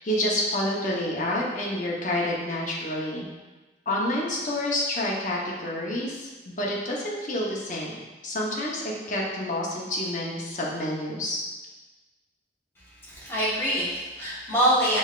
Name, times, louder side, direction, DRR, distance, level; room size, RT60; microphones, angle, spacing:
voice 1, 0.0-3.3 3.9-11.4, left 1 dB, 45° left, -4 dB, 0.8 m, -28 dB
voice 2, 13.0-15.0, equal, 15° left, -9 dB, 1.3 m, -24 dB
5.5 x 3.2 x 2.4 m, 1.2 s
head